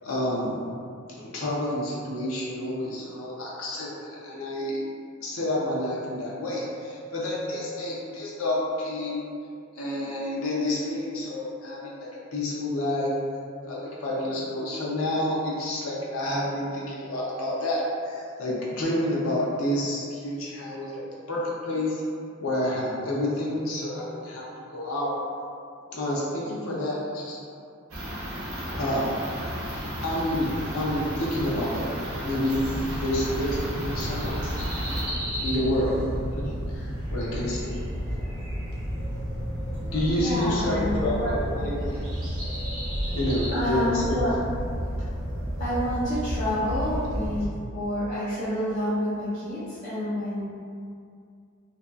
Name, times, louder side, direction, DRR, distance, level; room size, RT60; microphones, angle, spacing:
voice 1, 0.0-0.6 1.2-4.8 5.2-9.2 9.7-13.1 13.6-22.0 22.4-25.1 25.9-27.4 28.6-29.3 30.0-31.9 32.2-32.6 32.9-34.4 35.4-35.9 36.4-37.8 39.9-42.0 43.1-44.2, left 1 dB, 80° left, -5 dB, 0.6 m, -29 dB
sound 1, 27.9-35.0, equal, 85° right, 0.7 m, -34 dB
sound 2, 32.5-47.4, equal, 20° right, 0.6 m, -31 dB
voice 2, 39.7-41.6 43.5-44.3 45.6-50.4, left 1 dB, 35° left, -12 dB, 0.5 m, -29 dB
2.7 x 2.3 x 2.2 m, 2.3 s
head